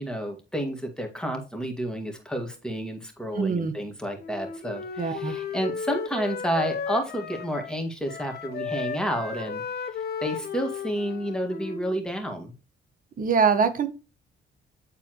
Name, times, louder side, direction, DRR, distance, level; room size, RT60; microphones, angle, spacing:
voice 1, 0.0-9.6 10.2-12.5, equal, 5° left, 3 dB, 2.1 m, -30 dB
voice 2, 3.3-3.7 5.0-5.3 13.2-13.9, right 5 dB, 45° right, 8 dB, 1.4 m, -23 dB
Wind instrument woodwind instrument, 4.2-12.0, left 6 dB, 50° left, 1.3 m, -34 dB
9.7 x 4.1 x 3.1 m, 0.32 s
cardioid pair, 90°, 20 cm